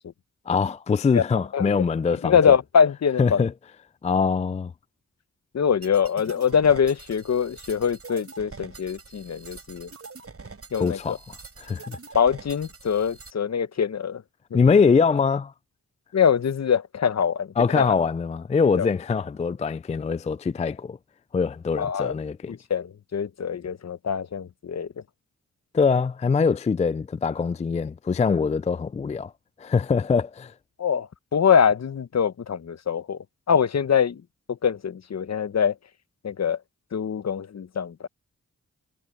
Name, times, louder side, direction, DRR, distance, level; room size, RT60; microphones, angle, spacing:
voice 1, 0.5-2.4 3.2-3.5 4.0-4.7 10.8-11.2 11.6-12.0 14.5-15.5 17.6-21.0 21.3-22.6 25.7-29.3 29.6-30.5, left 5 dB, 25° left, 0.3 m, -23 dB
voice 2, 1.5-3.5 5.5-9.9 10.7-11.2 12.1-14.2 14.5-14.6 16.1-17.9 18.8-18.9 21.8-22.1 22.5-24.9 30.8-34.2 34.5-35.7 36.2-36.6 36.9-38.1, left 7 dB, 60° left, 0.9 m, -23 dB
sound 1, 5.8-13.3, right 4 dB, 50° right, 5.9 m, -44 dB
cardioid pair, 55°, 31 cm